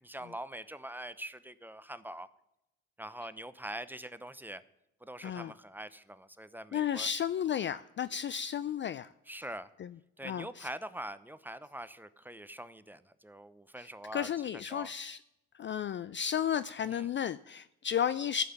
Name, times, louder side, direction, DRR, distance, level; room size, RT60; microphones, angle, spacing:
voice 1, 0.0-2.3 3.0-4.6 5.0-7.1 9.3-9.7 10.2-14.9 16.8-17.1, right 1 dB, 5° right, 14 dB, 0.7 m, -44 dB
voice 2, 5.2-5.5 6.7-9.1 9.8-9.9 10.2-10.7 13.8-13.9 14.1-15.2 15.5-18.4, left 9 dB, 35° left, 15 dB, 0.4 m, -33 dB
11.0 x 5.9 x 8.8 m, 0.86 s
hypercardioid pair, 65°, 34 cm